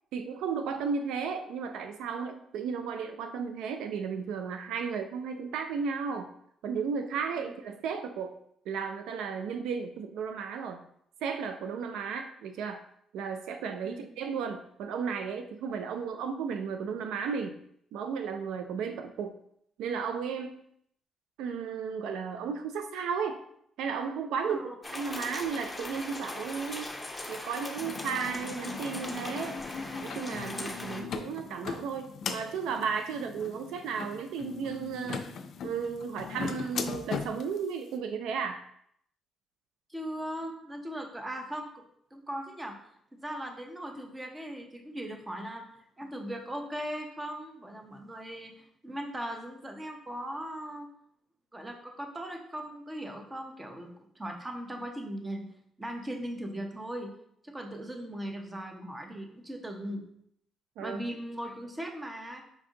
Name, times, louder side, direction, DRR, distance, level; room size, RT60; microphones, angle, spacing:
voice 1, 0.1-6.3 6.6-8.3 8.7-10.8 11.2-12.8 13.1-17.6 17.9-19.3 19.8-20.6 21.4-23.4 23.8-27.0 27.3-29.6 30.0-35.4 35.6-38.6 60.8-61.0, right 6 dB, 85° right, 7 dB, 0.3 m, -34 dB
sound 1, 24.8-31.0, left 2 dB, 15° left, 0.7 m, -40 dB
sound 2, 27.8-37.6, left 6 dB, 65° left, 0.4 m, -39 dB
voice 2, 39.9-42.8 43.2-45.7 46.0-50.9 51.5-55.5 55.8-57.1 57.4-60.1 60.8-62.4, equal, 20° right, 3 dB, 0.8 m, -39 dB
5.2 x 2.5 x 3.7 m, 0.69 s
cardioid pair, 90°, 0 cm